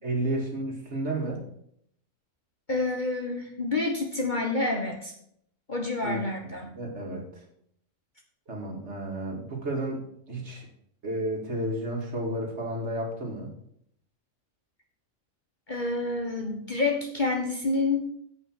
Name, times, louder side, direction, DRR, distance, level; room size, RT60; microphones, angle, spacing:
voice 1, 0.0-1.4 6.0-7.2 8.5-10.7 11.0-13.5, right 1 dB, 50° right, -1 dB, 2.5 m, -32 dB
voice 2, 2.7-5.1 5.7-6.8 15.7-18.1, left 3 dB, 35° left, 2 dB, 1.2 m, -28 dB
8.1 x 5.6 x 7.5 m, 0.70 s
omnidirectional pair, 1.6 m